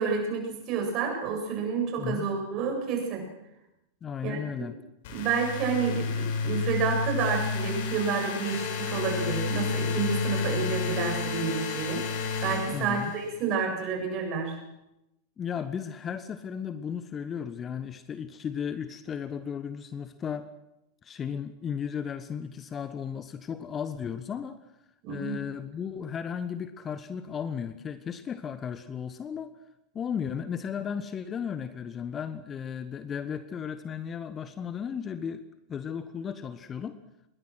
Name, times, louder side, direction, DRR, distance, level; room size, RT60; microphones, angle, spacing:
voice 1, 0.0-3.3 4.2-4.4 5.1-12.1 12.4-14.6 25.0-25.4, right 5 dB, 40° right, 3 dB, 7.9 m, -29 dB
voice 2, 4.0-4.8 12.7-13.1 15.4-20.5 21.0-24.7 25.1-29.6 29.9-37.0, left 7 dB, 25° left, 12 dB, 1.3 m, -35 dB
sound 1, 5.0-13.4, left 4 dB, 50° left, 5.3 m, -31 dB
26.0 x 22.0 x 6.4 m, 0.89 s
figure-of-eight pair, 90°, 0 cm